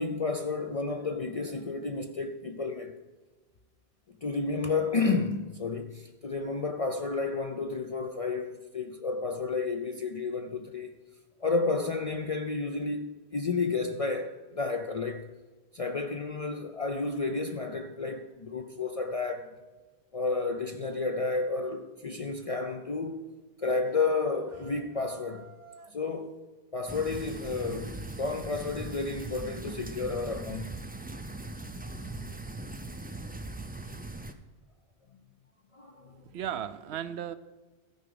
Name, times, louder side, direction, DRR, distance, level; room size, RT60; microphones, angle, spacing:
voice 1, 0.0-2.9 4.2-10.9 11.4-15.3 15.7-19.5 20.1-23.3 23.6-25.5 25.9-26.4 26.7-30.7 32.0-32.2 35.7-36.2, left 3 dB, 45° left, 0.5 m, -31 dB
sound 1, 23.8-26.0, right 4 dB, 50° right, 0.7 m, -53 dB
sound 2, 26.9-34.3, right 2 dB, 15° right, 0.4 m, -40 dB
voice 2, 36.1-37.3, right 9 dB, 80° right, 0.9 m, -36 dB
13.5 x 4.8 x 6.9 m
omnidirectional pair, 1.1 m